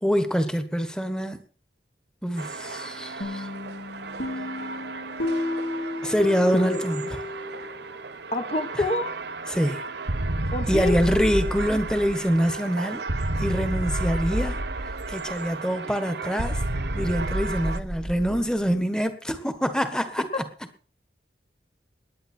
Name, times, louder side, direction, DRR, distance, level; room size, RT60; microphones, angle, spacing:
voice 1, 0.0-1.4 2.2-3.5 6.0-7.2 8.7-8.8 9.5-9.8 10.7-13.0 13.4-14.6 15.1-16.6 16.9-20.2, equal, 5° left, 9 dB, 1.5 m, -25 dB
sound 1, 2.4-17.8, right 4 dB, 65° right, 0.9 m, -36 dB
sound 2, 3.2-7.9, left 2 dB, 70° left, 4.2 m, -31 dB
voice 2, 8.3-9.1 10.5-11.0 20.3-20.4, left 2 dB, 35° left, 8 dB, 1.3 m, -27 dB
sound 3, 10.1-12.4 13.1-15.4 16.4-18.7, right 1 dB, 80° right, 1.8 m, -29 dB
20.0 x 9.6 x 4.5 m, 0.40 s
head